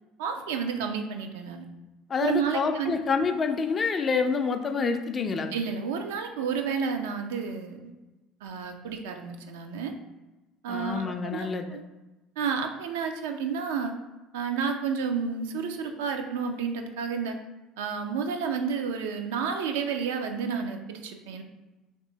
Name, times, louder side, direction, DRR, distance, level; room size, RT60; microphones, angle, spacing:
voice 1, 0.2-1.7 2.2-2.9 5.5-7.9 8.4-9.9 10.6-11.8 12.4-13.9 14.3-17.4 17.8-21.4, right 6 dB, 65° right, 5 dB, 0.3 m, -31 dB
voice 2, 2.1-5.5 10.7-11.7, left 5 dB, 30° left, 6 dB, 0.4 m, -27 dB
3.2 x 2.9 x 3.1 m, 1.1 s
figure-of-eight pair, 60°, 0 cm